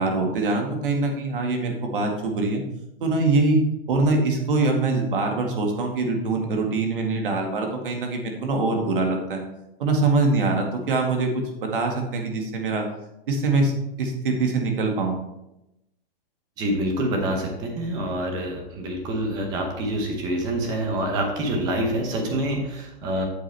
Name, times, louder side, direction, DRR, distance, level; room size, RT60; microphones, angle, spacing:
voice 1, 0.0-2.6 3.0-3.6 3.9-9.4 9.8-12.9 13.3-15.2, right 3 dB, 60° right, 2 dB, 2.1 m, -23 dB
voice 2, 16.6-23.2, right 1 dB, 15° right, 3 dB, 0.9 m, -26 dB
8.7 x 7.9 x 3.5 m, 0.89 s
hypercardioid pair, 175°, 30 cm